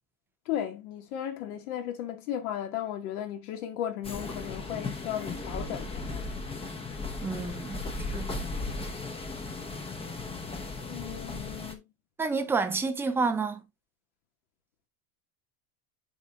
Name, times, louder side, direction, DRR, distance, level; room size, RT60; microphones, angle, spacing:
voice 1, 0.5-6.0 10.9-11.8, left 10 dB, 70° left, 2.1 m, -35 dB
sound 1, 4.0-11.8, left 3 dB, 10° left, 0.8 m, -36 dB
voice 2, 7.2-8.4 12.2-13.6, right 4 dB, 5° right, 0.4 m, -30 dB
9.6 x 4.3 x 2.5 m
supercardioid pair, 155°, 45 cm